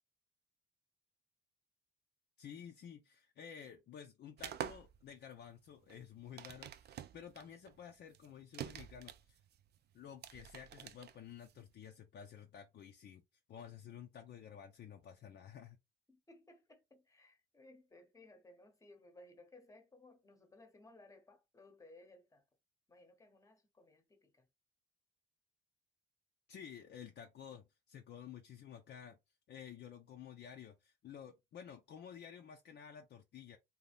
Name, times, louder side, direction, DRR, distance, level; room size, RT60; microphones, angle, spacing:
voice 1, 2.4-9.4 9.9-13.2 13.5-15.8 26.5-29.2 29.5-33.6, left 8 dB, 60° left, 0.6 m, -52 dB
sound 1, 4.4-11.7, right 10 dB, 55° right, 0.4 m, -48 dB
voice 2, 16.1-22.4 22.9-24.5, left 2 dB, 15° left, 0.9 m, -61 dB
2.7 x 2.3 x 3.3 m
cardioid pair, 90°, 20 cm